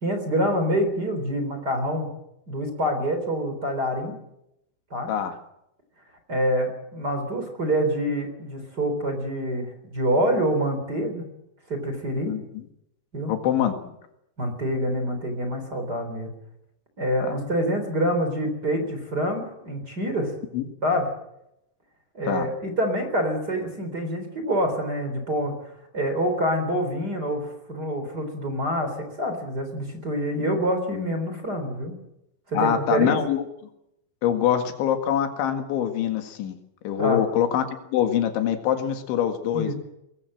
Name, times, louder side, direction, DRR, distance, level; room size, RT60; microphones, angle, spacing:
voice 1, 0.0-2.1 2.5-4.1 4.9-5.1 6.3-11.3 11.7-12.4 13.1-13.3 14.4-16.3 17.0-20.3 20.8-21.1 22.1-25.5 25.9-32.0 32.5-33.2 37.0-37.3 39.5-39.8, equal, 25° right, 6 dB, 3.7 m, -26 dB
voice 2, 12.3-12.6 13.3-13.9 17.2-17.3 20.5-20.6 22.3-22.5 32.5-33.5 34.2-36.6 36.8-39.8, left 10 dB, 85° left, 7 dB, 4.2 m, -24 dB
22.0 x 21.5 x 7.7 m, 0.83 s
omnidirectional pair, 5.2 m